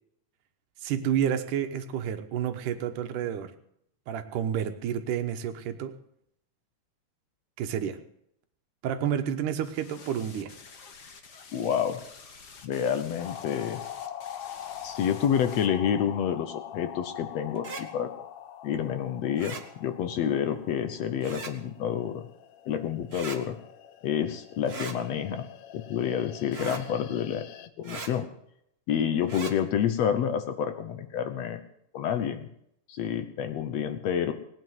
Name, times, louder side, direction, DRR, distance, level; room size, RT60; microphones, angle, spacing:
voice 1, 0.8-3.5 4.1-6.0 7.6-8.0 8.8-10.5, right 9 dB, 90° right, 8 dB, 2.6 m, -30 dB
sound 1, 9.6-15.7, left 5 dB, 45° left, 1.4 m, -50 dB
voice 2, 11.5-12.0 12.6-13.8 14.8-18.1 18.6-22.2 22.7-23.6 24.0-25.4 25.7-27.4 27.8-28.3 28.9-31.6 31.9-32.5 32.9-34.3, left 8 dB, 65° left, 9 dB, 2.0 m, -28 dB
sound 2, 13.2-27.7, left 10 dB, 80° left, 1.3 m, -44 dB
sound 3, 17.5-17.8 19.4-19.6 21.2-21.5 23.1-23.4 24.7-25.0 26.5-26.8 27.8-28.1 29.2-29.5, right 4 dB, 60° right, 0.6 m, -38 dB
19.0 x 9.2 x 7.8 m, 0.74 s
omnidirectional pair, 3.6 m